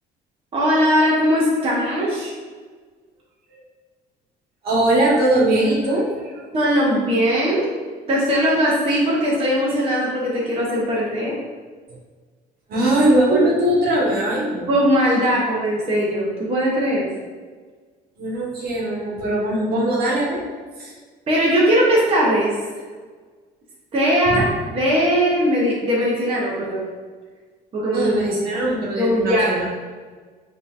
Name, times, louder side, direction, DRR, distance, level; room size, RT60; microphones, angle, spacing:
voice 1, 0.5-2.3 6.5-7.6 8.1-11.3 13.3-13.4 14.7-17.1 21.3-22.5 23.9-24.4 24.7-26.9 27.7-28.2 29.0-29.5, equal, 35° right, -5 dB, 0.9 m, -19 dB
voice 2, 4.6-6.4 12.7-14.7 18.2-20.4 20.8-20.9 24.3-24.4 27.9-29.6, right 1 dB, 65° right, -4 dB, 1.3 m, -20 dB
5.4 x 2.8 x 2.5 m, 1.5 s
cardioid pair, 110°, 17 cm